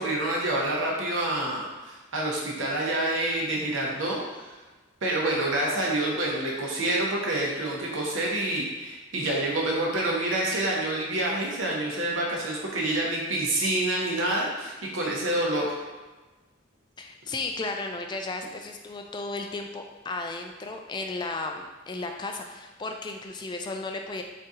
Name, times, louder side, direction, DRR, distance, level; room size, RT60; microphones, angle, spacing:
voice 1, 0.0-4.5 5.0-15.8, right 1 dB, 75° right, -3 dB, 0.8 m, -27 dB
voice 2, 17.0-24.2, left 3 dB, 20° left, 4 dB, 0.3 m, -34 dB
3.9 x 2.7 x 3.6 m, 1.2 s
head